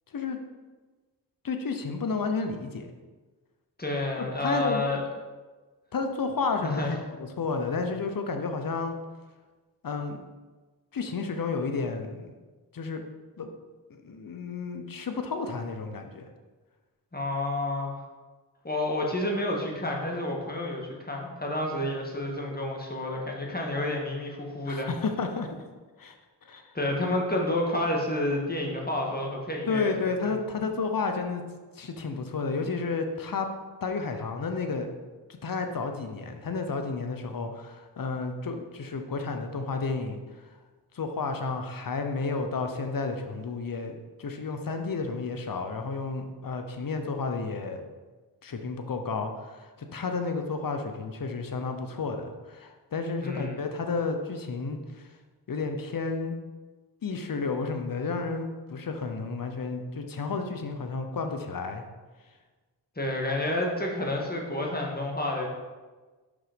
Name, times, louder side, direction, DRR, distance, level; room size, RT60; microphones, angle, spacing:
voice 1, 1.4-2.9 4.2-4.8 5.9-9.0 9.8-10.2 10.9-12.3 12.7-13.0 13.4-13.5 13.9-16.2 24.7-25.5 26.0-26.1 26.4-26.6 29.7-31.4 31.8-33.5 33.8-34.9 35.3-40.5 40.9-47.8 48.4-55.0 55.5-56.4 57.0-61.8, left 4 dB, 50° left, 6 dB, 1.0 m, -31 dB
voice 2, 3.8-5.0 6.6-7.0 17.1-17.9 18.6-24.9 26.7-29.9 53.2-53.6 63.0-65.5, left 1 dB, 20° left, -1 dB, 1.8 m, -29 dB
5.5 x 5.0 x 5.2 m, 1.3 s
cardioid pair, 45°, 43 cm